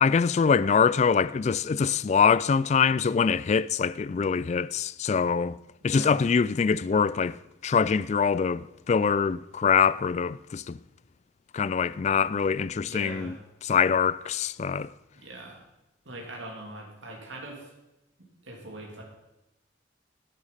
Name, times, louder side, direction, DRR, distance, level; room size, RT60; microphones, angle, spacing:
voice 1, 0.0-5.6 5.8-7.4 7.6-10.8 11.5-13.3 13.6-14.9, left 6 dB, 35° left, 0.3 m, -24 dB
voice 2, 5.8-6.2 12.8-13.4 15.1-15.6 16.0-17.7 18.4-19.0, right 1 dB, 80° right, 3.0 m, -41 dB
11.5 x 9.7 x 5.6 m
head